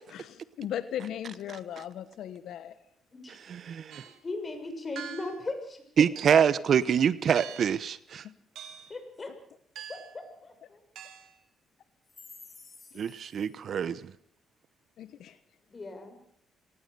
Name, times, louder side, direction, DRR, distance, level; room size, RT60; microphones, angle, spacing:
voice 1, 0.1-2.7 8.2-8.3 15.0-15.4, left 10 dB, 75° left, 12 dB, 1.2 m, -37 dB
voice 2, 3.5-4.0 6.0-8.2 13.0-14.1, right 8 dB, 60° right, 17 dB, 0.9 m, -25 dB
sound 1, 3.9-4.2 5.0-5.5 6.2-6.5 7.4-7.8 8.6-9.0 9.8-10.2 11.0-11.4, right 9 dB, 75° right, 2.6 m, -44 dB
voice 3, 4.0-5.8 8.9-9.3 9.9-10.8 12.8-12.9 15.7-16.2, left 2 dB, 30° left, 6 dB, 6.8 m, -38 dB
25.5 x 19.0 x 6.8 m, 0.66 s
cardioid pair, 90°, 0 cm